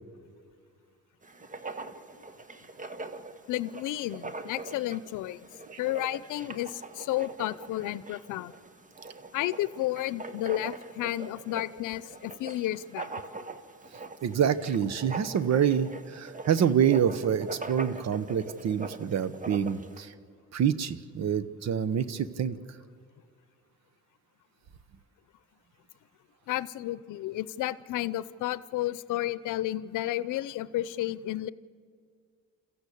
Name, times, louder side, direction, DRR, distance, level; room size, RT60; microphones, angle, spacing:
Writing, 1.2-20.0, right 3 dB, 25° right, 1.3 m, -42 dB
voice 1, 3.5-5.5 5.8-8.5 9.3-13.1 26.5-31.5, left 14 dB, 85° left, 17 dB, 0.7 m, -32 dB
voice 2, 14.2-20.1 20.5-22.6, right 8 dB, 60° right, 14 dB, 1.1 m, -27 dB
27.0 x 14.5 x 8.5 m, 2.1 s
cardioid pair, 90°, 30 cm